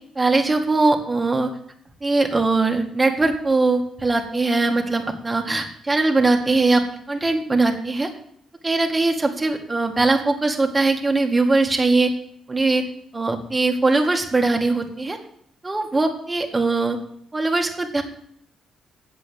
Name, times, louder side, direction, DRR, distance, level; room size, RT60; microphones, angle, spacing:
voice 1, 0.2-1.5 2.0-6.8 7.1-8.1 8.6-12.1 12.5-12.8 13.1-15.2 15.6-17.0 17.3-18.0, right 3 dB, 20° right, 3 dB, 1.9 m, -20 dB
8.5 x 7.7 x 7.1 m, 0.67 s
cardioid pair, 90°, 0 cm